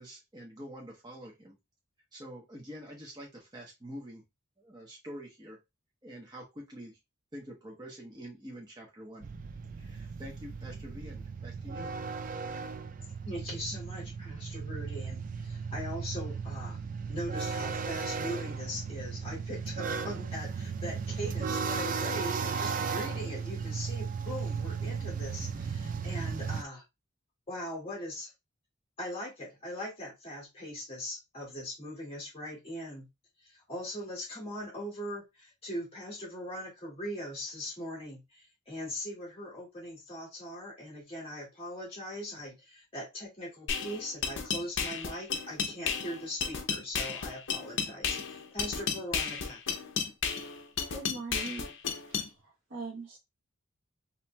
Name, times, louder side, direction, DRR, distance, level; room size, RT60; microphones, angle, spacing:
voice 1, 0.0-1.6 2.1-4.2 4.6-5.6 6.0-7.0 7.3-9.3 9.8-11.9, equal, 20° right, 0.9 m, -46 dB
sound 1, 9.2-26.6, right 5 dB, 40° right, 0.3 m, -36 dB
voice 2, 13.3-16.8 17.1-26.8 27.5-28.3 29.0-33.1 33.4-49.6, equal, 30° left, 2.0 m, -40 dB
sound 2, 43.7-52.3, left 6 dB, 60° left, 0.6 m, -33 dB
voice 3, 50.9-51.8 52.1-53.2, right 3 dB, 65° right, 1.0 m, -42 dB
4.3 x 2.9 x 2.2 m
head